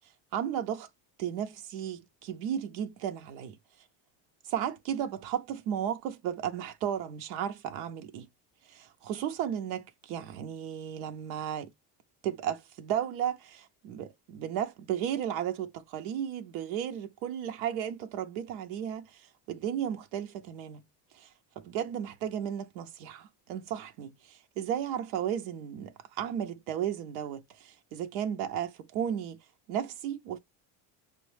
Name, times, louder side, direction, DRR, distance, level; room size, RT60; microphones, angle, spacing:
voice 1, 0.3-0.9 1.2-3.6 4.4-8.3 8.7-8.8 9.0-11.7 12.2-20.9 21.1-21.3 21.6-29.4 29.7-30.4, right 9 dB, 85° right, 0.7 m, -34 dB
6.0 x 2.1 x 3.1 m
supercardioid pair, 95°, 48 cm